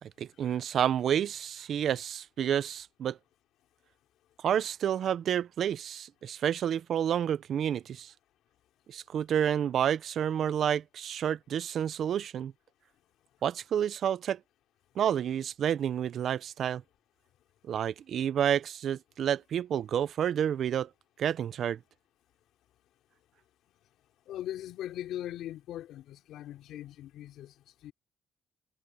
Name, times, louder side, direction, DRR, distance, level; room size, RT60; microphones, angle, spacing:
voice 1, 0.0-3.2 4.4-8.1 8.9-12.5 13.4-14.4 15.0-16.8 17.7-20.9 21.2-21.8, right 9 dB, 65° right, 0.7 m, -29 dB
voice 2, 24.3-27.5 27.8-27.9, left 12 dB, 85° left, 3.2 m, -40 dB
cardioid pair, 90°, 0 cm